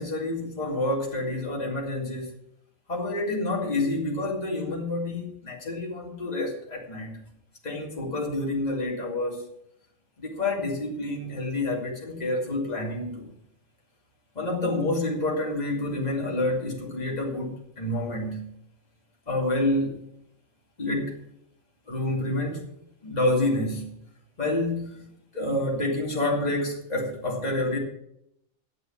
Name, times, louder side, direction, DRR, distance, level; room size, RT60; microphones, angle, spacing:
voice 1, 0.0-2.3 2.9-7.2 7.6-9.5 10.2-13.3 14.3-18.5 19.3-20.0 20.8-21.2 21.9-22.7 23.0-23.9 24.4-27.8, left 2 dB, 30° left, -1 dB, 2.7 m, -28 dB
10.5 x 8.2 x 8.4 m, 0.77 s
omnidirectional pair, 1.3 m